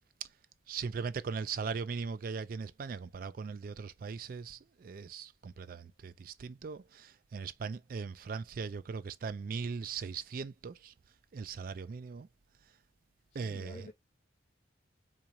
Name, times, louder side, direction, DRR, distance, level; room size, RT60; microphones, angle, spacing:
voice 1, 0.7-10.9 11.3-12.3 13.3-13.9, right 5 dB, 45° right, 0.3 m, -39 dB
voice 2, 13.3-13.9, left 2 dB, 35° left, 0.3 m, -49 dB
3.9 x 2.5 x 2.9 m
head